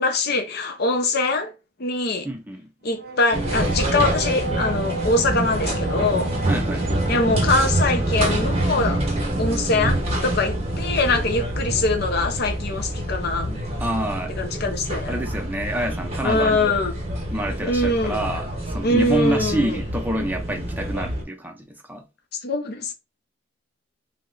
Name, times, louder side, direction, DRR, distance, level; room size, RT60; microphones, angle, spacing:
voice 1, 0.0-1.5 1.8-2.3 2.8-6.3 7.1-9.0 9.4-13.6 14.4-15.2 16.2-16.9 17.6-18.2 18.8-19.8 22.4-22.9, left 2 dB, 60° left, 0.6 m, -23 dB
voice 2, 2.2-2.7 6.5-6.9 13.8-14.3 15.1-16.7 17.3-22.1, right 1 dB, 10° right, 0.6 m, -27 dB
sound 1, 2.9-14.8, right 2 dB, 55° right, 0.5 m, -36 dB
sound 2, 3.3-21.2, right 1 dB, 35° right, 0.9 m, -26 dB
2.9 x 2.1 x 3.8 m
head